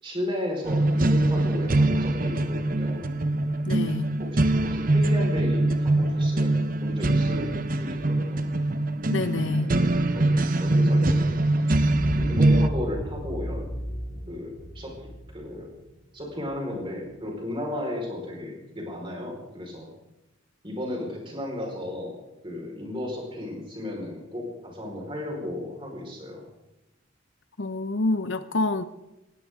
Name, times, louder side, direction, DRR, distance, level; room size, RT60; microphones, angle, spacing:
voice 1, 0.0-3.0 4.2-8.4 9.6-11.3 12.2-13.7 14.3-14.9 15.3-15.7 16.1-19.9 20.6-22.2 22.4-26.4, left 1 dB, 25° right, 0 dB, 4.9 m, -34 dB
sound 1, 0.6-12.7, right 2 dB, 45° right, 1.0 m, -23 dB
voice 2, 3.7-4.2 9.1-9.8 27.6-28.8, left 2 dB, 65° left, 12 dB, 0.8 m, -27 dB
sound 2, 11.8-16.6, equal, 45° left, 2.2 m, -34 dB
19.0 x 16.5 x 3.8 m, 0.94 s
head